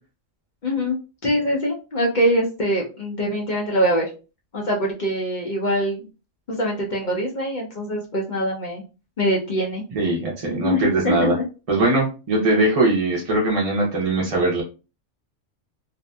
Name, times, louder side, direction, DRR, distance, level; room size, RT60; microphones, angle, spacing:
voice 1, 0.6-4.1 4.5-6.1 6.5-8.8 9.2-9.8 10.6-11.4, equal, 50° left, -2 dB, 0.6 m, -23 dB
voice 2, 9.9-11.4 11.7-14.6, right 2 dB, 35° right, -4 dB, 0.6 m, -21 dB
2.6 x 2.5 x 2.2 m, 0.32 s
omnidirectional pair, 1.3 m